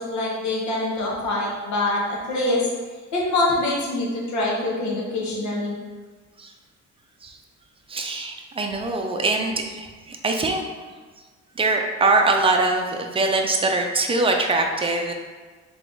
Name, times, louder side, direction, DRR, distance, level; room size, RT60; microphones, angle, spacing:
voice 1, 0.0-2.7 3.1-5.8, left 2 dB, 70° left, -4 dB, 1.4 m, -24 dB
voice 2, 7.9-10.6 11.6-15.1, right 3 dB, 20° right, 2 dB, 0.6 m, -22 dB
3.5 x 3.4 x 3.9 m, 1.4 s
cardioid pair, 90°, 30 cm